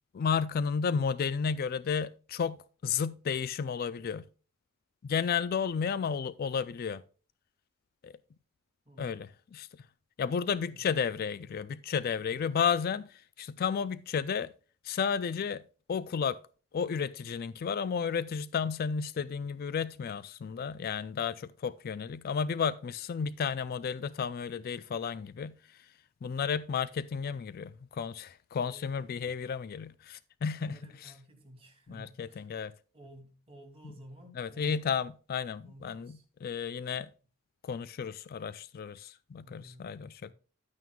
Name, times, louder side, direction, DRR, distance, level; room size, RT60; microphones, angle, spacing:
voice 1, 0.1-2.6 2.8-4.2 5.0-7.0 8.0-8.1 9.0-9.9 10.2-14.5 14.8-15.6 15.9-16.4 16.7-25.9 26.2-31.1 31.9-32.7 34.4-37.1 37.6-40.3, left 6 dB, 45° left, 0.3 m, -32 dB
voice 2, 8.9-9.2 10.3-11.2 12.2-12.4 28.6-29.4 30.6-32.5 32.9-35.0 35.6-36.2 39.4-39.9 40.2-40.3, equal, 25° right, 2.5 m, -54 dB
10.5 x 9.2 x 2.3 m
head